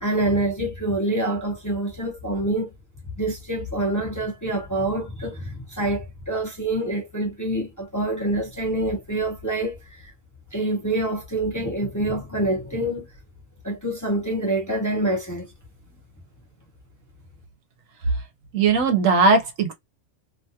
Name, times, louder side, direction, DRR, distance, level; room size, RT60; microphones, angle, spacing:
voice 1, 0.0-2.7 3.2-10.1 10.5-13.0 13.6-15.5, right 1 dB, 20° left, 0.6 m, -26 dB
voice 2, 18.5-19.7, right 4 dB, 85° right, 1.3 m, -18 dB
3.0 x 2.2 x 2.7 m
omnidirectional pair, 1.3 m